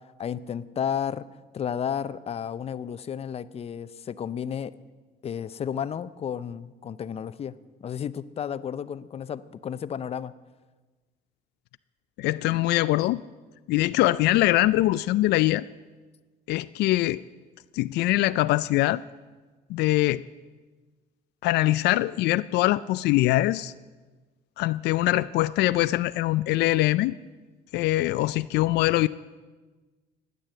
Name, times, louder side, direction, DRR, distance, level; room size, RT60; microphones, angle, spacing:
voice 1, 0.2-1.2 1.5-4.8 5.2-7.5 7.8-10.3, left 8 dB, 35° left, 15 dB, 0.6 m, -32 dB
voice 2, 12.2-13.2 13.7-15.6 16.5-17.2 17.7-19.0 19.7-20.2 21.4-23.7 24.6-27.2 27.7-29.1, left 17 dB, 80° left, 14 dB, 0.4 m, -23 dB
16.0 x 9.9 x 7.6 m, 1.3 s
cardioid pair, 110°, 17 cm